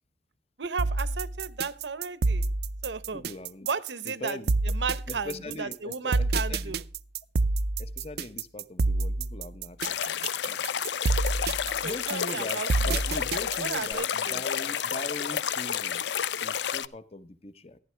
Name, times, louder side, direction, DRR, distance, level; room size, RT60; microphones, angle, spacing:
voice 1, 0.6-2.5 2.8-3.2 3.7-4.4 4.6-6.8 11.8-12.9 13.6-14.4, right 5 dB, 90° right, 16 dB, 0.9 m, -34 dB
sound 1, 0.8-13.9, right 3 dB, 65° right, 0.5 m, -28 dB
voice 2, 3.1-3.7 4.0-4.5 5.1-6.8 7.8-10.7 11.8-17.8, left 2 dB, 35° left, 14 dB, 0.8 m, -41 dB
sound 2, 9.8-16.9, left 8 dB, 85° left, 0.5 m, -30 dB
14.5 x 11.0 x 3.3 m, 0.36 s
head